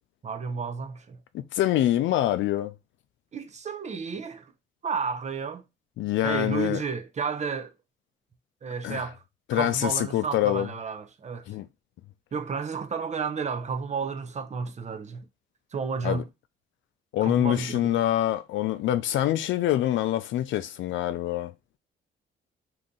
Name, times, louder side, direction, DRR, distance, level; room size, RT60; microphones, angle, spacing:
voice 1, 0.2-1.2 3.3-4.5 4.8-5.6 6.2-7.7 8.6-9.2 9.5-11.5 12.3-15.3 15.7-16.3 17.2-18.0, right 5 dB, 35° right, 0.6 m, -32 dB
voice 2, 1.3-2.7 6.0-6.8 8.8-9.0 9.5-10.7 11.5-11.7 16.0-16.2 17.1-21.5, left 13 dB, 75° left, 0.4 m, -25 dB
2.8 x 2.5 x 3.7 m
cardioid pair, 90°, 20 cm